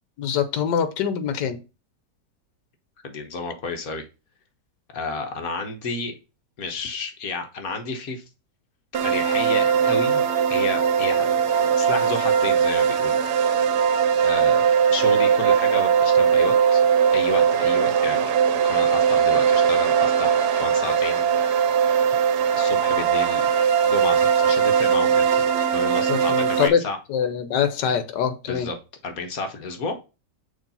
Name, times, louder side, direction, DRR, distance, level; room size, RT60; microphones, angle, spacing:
voice 1, 0.2-1.6 26.1-26.8 27.1-28.7, left 8 dB, 75° left, 1.4 m, -24 dB
voice 2, 3.0-4.0 4.9-6.1 6.6-8.2 9.0-10.2 10.5-13.2 14.2-16.8 17.1-18.3 18.6-21.3 22.5-23.5 23.8-25.5 25.7-27.0 28.5-28.7 29.0-29.9, left 3 dB, 60° left, 1.3 m, -31 dB
sound 1, 8.9-26.7, right 7 dB, 70° right, 1.2 m, -20 dB
6.5 x 3.2 x 5.3 m
omnidirectional pair, 1.9 m